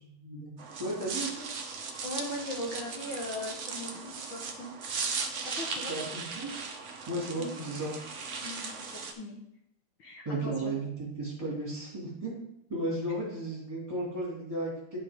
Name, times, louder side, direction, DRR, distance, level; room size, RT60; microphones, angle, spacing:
voice 1, 0.0-0.5 0.8-1.5 5.9-6.5 7.1-7.9 10.2-12.4 12.7-15.0, right 1 dB, 15° right, -6 dB, 2.4 m, -34 dB
sound 1, 0.6-9.1, right 4 dB, 60° right, 0.7 m, -37 dB
voice 2, 2.0-4.7 5.4-5.9 7.4-7.5 8.4-9.4 10.0-10.7, left 1 dB, 65° left, 0 dB, 2.0 m, -39 dB
11.0 x 5.6 x 3.5 m, 0.77 s
omnidirectional pair, 2.4 m